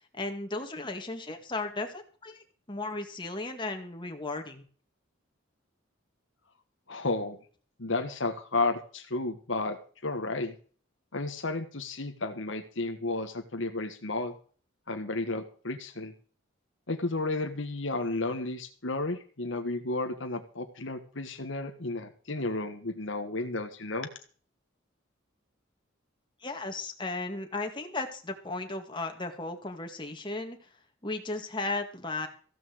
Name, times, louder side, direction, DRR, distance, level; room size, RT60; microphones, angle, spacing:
voice 1, 0.1-4.6 26.4-30.6 31.0-32.3, left 2 dB, 25° left, 4 dB, 2.2 m, -35 dB
voice 2, 6.9-7.4 7.8-10.5 11.1-14.3 14.9-16.1 16.9-24.1, left 2 dB, 65° left, 6 dB, 1.5 m, -32 dB
15.0 x 6.2 x 7.9 m, 0.43 s
head